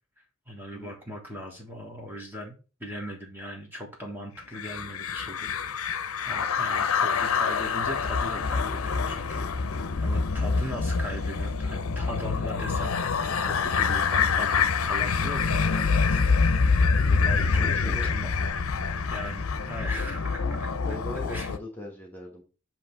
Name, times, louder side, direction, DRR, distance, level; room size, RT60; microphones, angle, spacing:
voice 1, 0.5-6.0 6.2-16.8 17.1-18.3 18.7-20.7 21.3-21.5, equal, 10° right, 0 dB, 1.3 m, -39 dB
sound 1, 4.6-21.6, left 5 dB, 85° left, 0.6 m, -26 dB
voice 2, 17.5-18.1 20.8-22.4, left 1 dB, 10° left, -1 dB, 1.2 m, -39 dB
7.6 x 2.9 x 4.5 m, 0.34 s
head